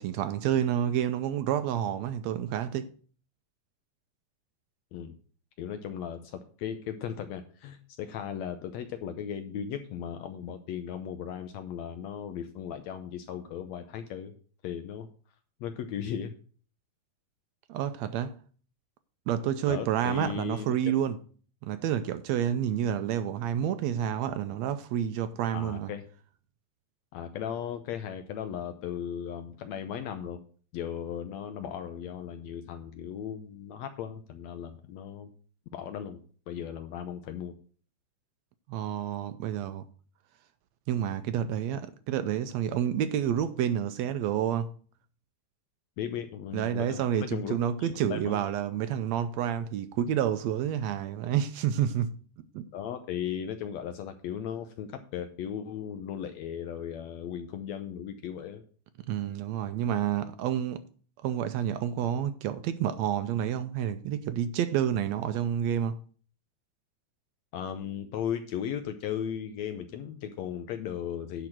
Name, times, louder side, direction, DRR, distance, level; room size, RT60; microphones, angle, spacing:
voice 1, 0.0-2.9 17.7-18.4 19.3-21.2 21.6-25.9 38.7-39.8 40.9-44.7 46.5-52.1 52.5-52.7 59.1-60.8 61.2-66.0, right 10 dB, 75° right, 1.6 m, -29 dB
voice 2, 5.6-14.3 14.6-15.1 15.6-16.3 19.7-20.8 25.5-26.1 27.1-30.4 30.7-35.3 35.7-37.5 46.0-48.4 52.7-58.6 67.5-71.5, left 9 dB, 75° left, 1.8 m, -36 dB
10.5 x 4.0 x 7.4 m
omnidirectional pair, 3.5 m